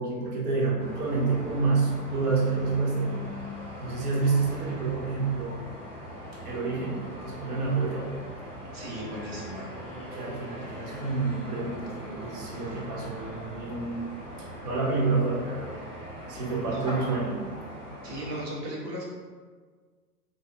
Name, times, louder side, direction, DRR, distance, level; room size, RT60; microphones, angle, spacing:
voice 1, 0.0-3.3 3.8-5.7 6.4-8.2 10.1-14.1 14.4-15.8 16.3-17.4, right 4 dB, 70° right, -3 dB, 1.0 m, -28 dB
sound 1, 0.8-18.4, equal, 15° right, 0.6 m, -41 dB
voice 2, 8.7-9.7 16.7-16.9 18.0-19.1, right 1 dB, 35° right, -5 dB, 1.1 m, -36 dB
3.5 x 2.1 x 3.3 m, 1.6 s
hypercardioid pair, 115°, 46 cm